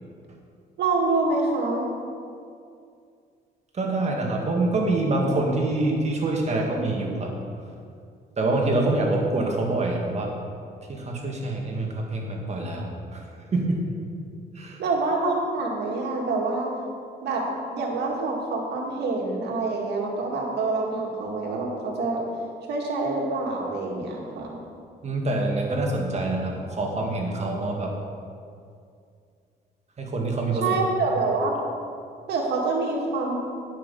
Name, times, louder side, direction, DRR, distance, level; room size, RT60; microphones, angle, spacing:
voice 1, 0.8-1.9 14.8-16.7 17.2-17.4 17.7-22.2 22.7-24.6 30.6-31.6 32.3-33.3, right 3 dB, 80° right, -1 dB, 2.2 m, -26 dB
voice 2, 3.7-7.3 8.4-10.3 10.9-13.2 13.5-13.8 14.5-14.8 25.0-27.9 30.0-30.7, right 2 dB, 40° right, 0 dB, 2.1 m, -25 dB
10.0 x 6.1 x 6.8 m, 2.3 s
cardioid pair, 95°, 17 cm